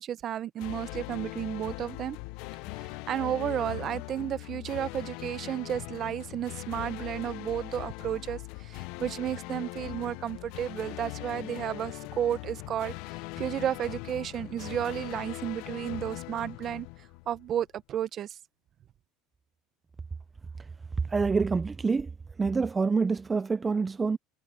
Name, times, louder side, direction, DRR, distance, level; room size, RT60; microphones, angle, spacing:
voice 1, 0.0-2.2 2.7-16.9 17.3-18.4, right 10 dB, 40° right, 0.9 m, -33 dB
sound 1, 0.6-17.6, left 23 dB, 70° left, 0.5 m, -40 dB
voice 2, 21.1-22.1 22.4-24.2, right 4 dB, 20° right, 0.4 m, -26 dB
supercardioid pair, 125°, 0 cm